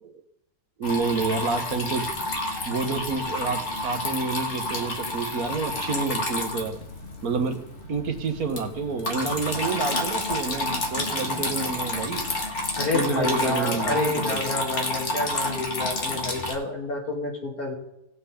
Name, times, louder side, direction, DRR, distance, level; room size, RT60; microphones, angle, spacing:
Water tap faucet / Trickle dribble, 0.8-16.5, left 2 dB, 45° left, 1.8 m, -30 dB
voice 1, 0.8-2.1 2.7-6.8 7.2-7.6 7.9-12.3 12.9-14.4, right 4 dB, 65° right, 5 dB, 1.8 m, -29 dB
voice 2, 12.8-17.7, left 2 dB, 65° left, -1 dB, 3.2 m, -29 dB
19.5 x 7.3 x 3.6 m, 0.84 s
omnidirectional pair, 1.7 m